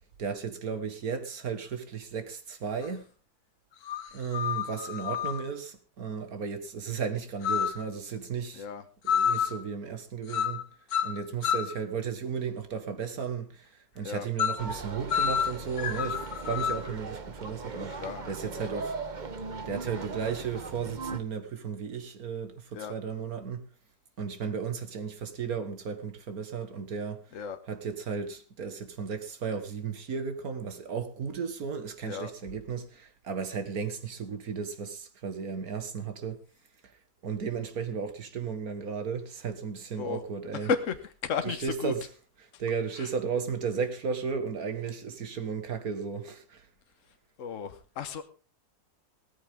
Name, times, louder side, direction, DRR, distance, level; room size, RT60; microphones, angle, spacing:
voice 1, 0.2-3.1 4.1-8.7 9.0-10.6 11.0-13.7 14.0-18.9 19.7-23.6 24.2-27.2 27.7-36.4 37.2-40.7 41.4-42.1 42.6-46.6, right 6 dB, 65° right, 2.1 m, -34 dB
sound 1, 2.8-2.9 3.8-5.4 7.4-7.9 9.1-9.6 10.3-10.6 10.9-11.8 14.4-14.7 15.1-16.9, left 8 dB, 75° left, 1.5 m, -29 dB
sound 2, 14.6-21.2, right 4 dB, 35° right, 1.1 m, -39 dB
voice 2, 17.9-18.6 22.7-22.9 27.3-27.6 32.0-32.3 40.0-40.2 40.5-41.0 41.2-41.9 43.0-43.1 47.4-48.2, left 6 dB, 55° left, 1.5 m, -33 dB
16.5 x 14.5 x 3.6 m
omnidirectional pair, 1.7 m